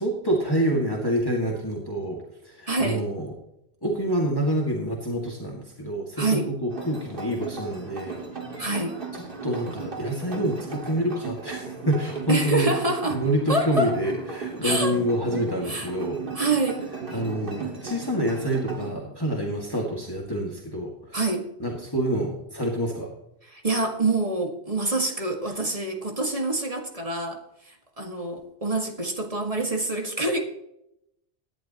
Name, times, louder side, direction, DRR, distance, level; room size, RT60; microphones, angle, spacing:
voice 1, 0.0-3.3 3.8-8.2 9.1-12.7 13.1-16.3 17.1-21.2 21.6-23.1, right 1 dB, 20° left, -2 dB, 2.0 m, -27 dB
voice 2, 2.7-3.0 6.2-6.5 8.6-9.0 12.3-13.2 13.5-14.0 14.6-15.0 15.6-15.9 16.3-17.2 21.1-21.5 23.5-30.4, right 2 dB, 35° right, 3 dB, 1.9 m, -26 dB
sound 1, 6.7-18.9, right 4 dB, 55° right, 2.1 m, -36 dB
18.0 x 11.0 x 3.0 m, 0.80 s
omnidirectional pair, 1.1 m